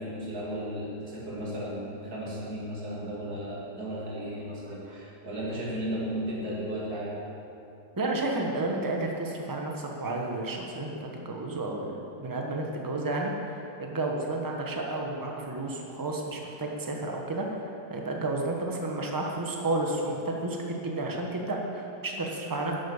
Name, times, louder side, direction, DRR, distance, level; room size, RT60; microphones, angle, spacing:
voice 1, 0.0-7.1, equal, 65° right, -6 dB, 3.0 m, -35 dB
voice 2, 8.0-11.9 12.2-17.5 17.9-22.7, right 2 dB, 15° right, 0 dB, 1.1 m, -31 dB
11.0 x 7.8 x 7.2 m, 2.7 s
omnidirectional pair, 1.8 m